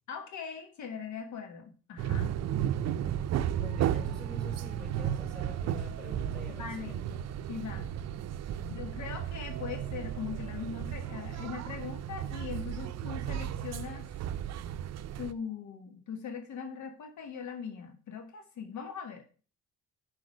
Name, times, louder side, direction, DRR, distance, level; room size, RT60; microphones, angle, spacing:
voice 1, 0.1-2.3 6.6-7.0 7.5-8.0 8.7-14.1 15.2-19.3, left 6 dB, 70° left, 5 dB, 1.2 m, -40 dB
sound 1, 2.0-15.3, right 10 dB, 60° right, 0.5 m, -34 dB
voice 2, 3.5-7.3 8.6-8.8, left 4 dB, ahead, 1 dB, 4.1 m, -47 dB
6.2 x 4.8 x 6.3 m, 0.39 s
cardioid pair, 90°, 30 cm